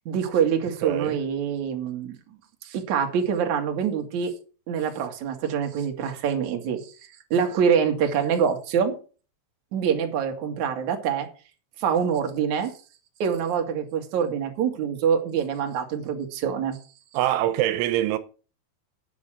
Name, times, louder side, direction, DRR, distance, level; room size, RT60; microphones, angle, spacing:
voice 1, 0.1-2.2 2.6-4.3 4.7-9.0 9.7-11.3 11.8-12.7 13.2-16.8, right 7 dB, 50° right, 2.8 m, -25 dB
voice 2, 0.8-1.2 17.1-18.2, right 13 dB, 85° right, 3.3 m, -24 dB
9.7 x 9.6 x 6.2 m
omnidirectional pair, 5.5 m